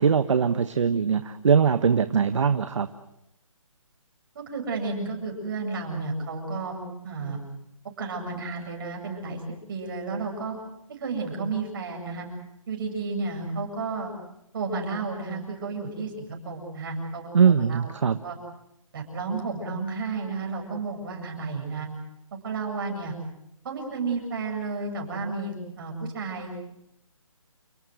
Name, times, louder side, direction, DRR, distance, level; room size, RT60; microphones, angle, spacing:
voice 1, 0.0-2.9 17.3-18.2, right 6 dB, 60° right, 10 dB, 1.2 m, -21 dB
voice 2, 4.3-7.4 8.0-9.4 9.7-10.6 11.0-12.3 12.7-14.1 14.5-17.9 18.2-18.4 18.9-21.9 22.4-23.2 23.6-26.6, right 4 dB, 40° right, 2 dB, 7.9 m, -32 dB
30.0 x 19.0 x 7.9 m, 0.83 s
hypercardioid pair, 165°, 18 cm